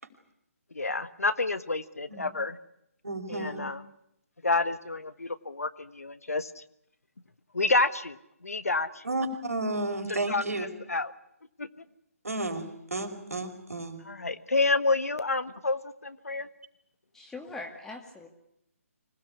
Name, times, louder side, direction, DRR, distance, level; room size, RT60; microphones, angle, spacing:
voice 1, 0.7-2.5 3.3-3.8 4.4-6.5 7.5-8.2 8.4-9.0 10.3-10.4 10.9-11.1 11.6-11.7 14.1-16.5, left 3 dB, 80° left, 12 dB, 1.5 m, -28 dB
voice 2, 3.0-3.6 9.0-10.7 12.2-14.0, right 2 dB, 75° right, 6 dB, 5.0 m, -32 dB
voice 3, 17.1-18.3, left 2 dB, 5° left, 2 dB, 2.3 m, -41 dB
25.5 x 18.5 x 10.0 m, 0.80 s
figure-of-eight pair, 145°, 8 cm